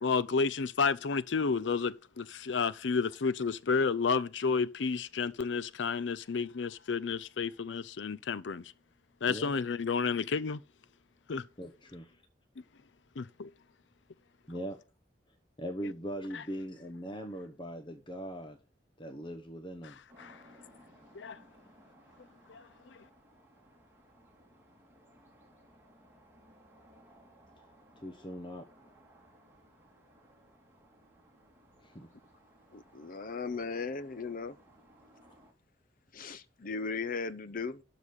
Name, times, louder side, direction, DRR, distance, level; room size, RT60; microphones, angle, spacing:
voice 1, 0.0-8.6 9.2-10.6 11.3-11.4 13.2-13.5 16.3-16.4 20.2-20.4 21.1-21.4 22.5-22.6, left 5 dB, 80° left, 0.5 m, -31 dB
voice 2, 11.6-12.2 14.5-14.8 15.6-18.6 19.0-20.0 28.0-28.7 31.8-32.1, equal, 25° left, 1.1 m, -40 dB
sound 1, 20.1-35.5, right 1 dB, 15° right, 2.8 m, -61 dB
voice 3, 32.7-34.6 36.1-37.8, left 4 dB, 50° left, 0.8 m, -37 dB
12.0 x 4.1 x 6.6 m
head